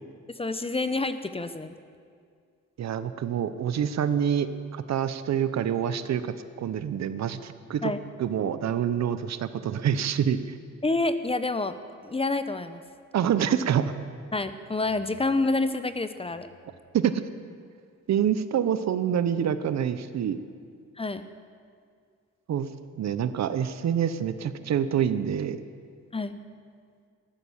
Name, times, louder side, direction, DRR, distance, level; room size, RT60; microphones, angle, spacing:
voice 1, 0.4-1.8 7.8-8.0 10.8-11.8 12.0-12.8 14.3-16.5 21.0-21.3 26.1-26.4, left 2 dB, 20° left, 11 dB, 0.9 m, -28 dB
voice 2, 2.8-4.5 4.7-7.9 8.2-10.6 13.1-13.9 16.9-17.2 18.1-20.4 22.5-22.7 23.0-25.6, right 9 dB, 60° right, 12 dB, 0.9 m, -26 dB
14.5 x 12.5 x 7.3 m, 2.2 s
cardioid pair, 70°, 30 cm